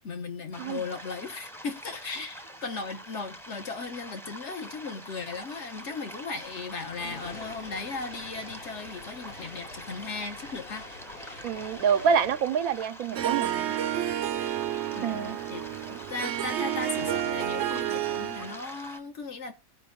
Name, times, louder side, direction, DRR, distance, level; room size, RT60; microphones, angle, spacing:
voice 1, 0.0-10.9 14.9-15.6 15.9-19.5, left 4 dB, 55° left, 1.4 m, -37 dB
sound 1, 0.5-19.0, equal, ahead, 0.7 m, -45 dB
sound 2, 6.4-13.9, left 2 dB, 80° left, 3.6 m, -47 dB
voice 2, 11.4-13.8 15.0-15.4, right 7 dB, 85° right, 1.1 m, -27 dB
Harp, 13.1-18.6, right 11 dB, 65° right, 0.8 m, -30 dB
15.0 x 5.3 x 3.6 m
omnidirectional pair, 1.4 m